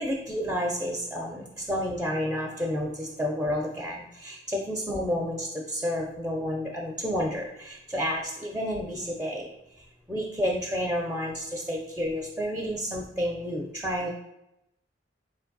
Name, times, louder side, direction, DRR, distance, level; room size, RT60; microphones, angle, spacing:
voice 1, 0.0-9.5 10.1-14.1, equal, 5° right, -1 dB, 0.4 m, -30 dB
4.0 x 2.5 x 3.8 m, 0.85 s
head